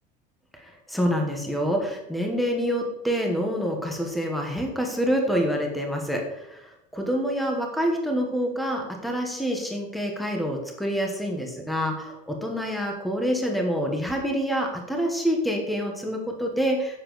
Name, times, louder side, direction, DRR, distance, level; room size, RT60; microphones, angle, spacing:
voice 1, 0.5-17.0, equal, ahead, 2 dB, 1.1 m, -27 dB
9.6 x 7.2 x 4.0 m, 0.90 s
cardioid pair, 175°, 21 cm